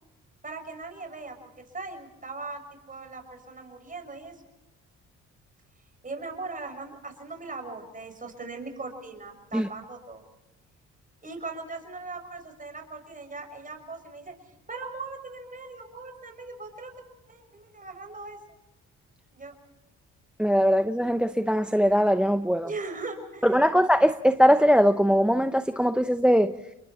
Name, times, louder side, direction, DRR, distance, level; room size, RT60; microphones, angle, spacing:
voice 1, 0.4-2.6 2.9-4.4 6.0-10.2 11.2-14.4 14.7-16.9 17.3-18.4 19.3-19.6 22.6-23.7, right 3 dB, 25° right, 6.3 m, -39 dB
voice 2, 20.4-22.7 23.4-26.5, equal, 5° right, 0.8 m, -21 dB
29.5 x 22.5 x 4.3 m
cardioid pair, 90°, 30 cm